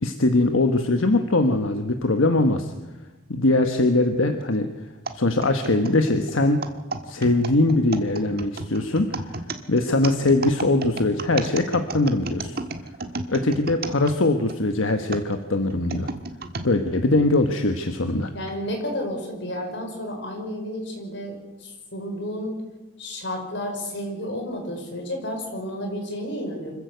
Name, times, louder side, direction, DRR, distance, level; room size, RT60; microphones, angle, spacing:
voice 1, 0.0-2.7 3.3-4.7 5.1-6.6 7.1-9.4 9.7-12.6 13.3-16.1 16.6-18.3, left 2 dB, 85° left, 6 dB, 1.3 m, -21 dB
sound 1, 5.1-14.6 15.1-16.7 17.3-17.4 18.3-18.5, right 3 dB, 50° right, 1.5 m, -33 dB
voice 2, 18.3-22.6 23.0-26.7, equal, 60° left, 2 dB, 5.4 m, -31 dB
25.5 x 14.5 x 8.0 m, 1.1 s
head